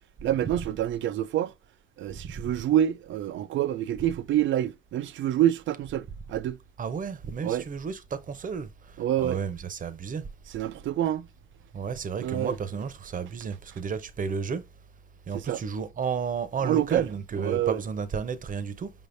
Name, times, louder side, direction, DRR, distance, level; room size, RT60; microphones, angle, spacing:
voice 1, 0.2-1.5 2.0-6.6 7.4-7.6 9.0-9.4 10.5-11.3 12.2-12.6 15.3-15.6 16.6-17.1 17.4-17.8, right 11 dB, 75° right, 0.5 m, -27 dB
voice 2, 6.8-8.7 9.2-10.2 11.7-14.6 15.3-18.9, right 6 dB, 40° right, 0.8 m, -32 dB
5.2 x 3.5 x 2.6 m
cardioid pair, 90°, 20 cm